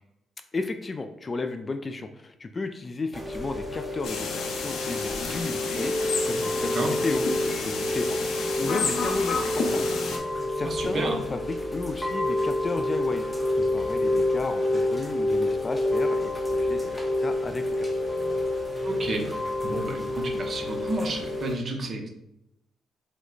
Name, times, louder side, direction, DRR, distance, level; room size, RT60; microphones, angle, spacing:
voice 1, 0.5-7.3 7.6-17.9, left 3 dB, 30° left, 7 dB, 0.4 m, -34 dB
Chime / Rain, 3.1-21.5, left 1 dB, 5° left, 0.8 m, -28 dB
sound 1, 4.0-10.2, left 4 dB, 75° left, 0.7 m, -31 dB
voice 2, 10.6-11.2 18.8-19.2 19.6-22.1, right 2 dB, 45° right, 2 dB, 0.9 m, -31 dB
5.0 x 2.2 x 3.8 m, 0.85 s
cardioid pair, 90°, 0 cm